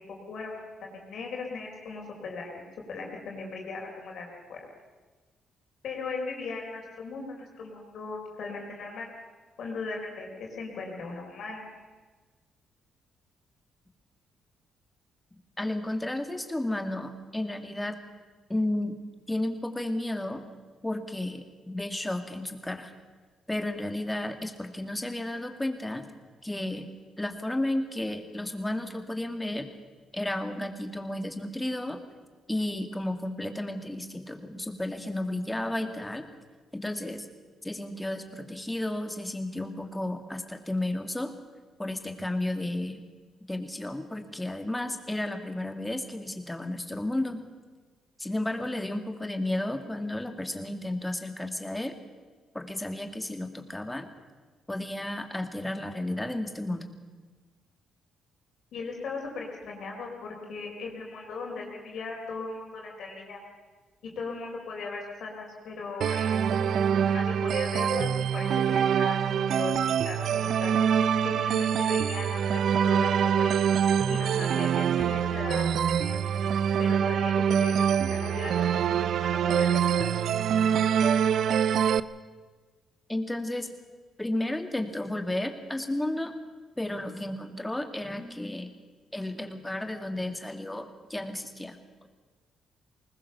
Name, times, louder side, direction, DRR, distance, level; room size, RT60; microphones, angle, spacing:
voice 1, 0.3-2.6 2.9-4.6 5.8-9.1 9.6-11.7 58.7-63.4 64.0-70.8 71.2-73.7 74.1-76.2 76.8-80.4, left 4 dB, 65° left, 0 dB, 4.6 m, -38 dB
voice 2, 15.6-18.0 18.5-19.0 19.3-20.4 20.8-22.9 23.5-26.1 26.4-26.9 27.2-29.7 30.1-32.0 32.5-36.3 36.7-37.3 37.6-41.3 41.8-43.0 43.5-47.4 48.2-51.9 52.5-54.1 54.7-56.8 83.1-83.7 84.2-86.3 86.8-88.7 89.1-91.8, left 1 dB, 10° left, 6 dB, 2.2 m, -32 dB
sound 1, 66.0-82.0, right 8 dB, 65° right, 0.6 m, -25 dB
20.5 x 19.5 x 6.9 m, 1.4 s
cardioid pair, 90°, 0 cm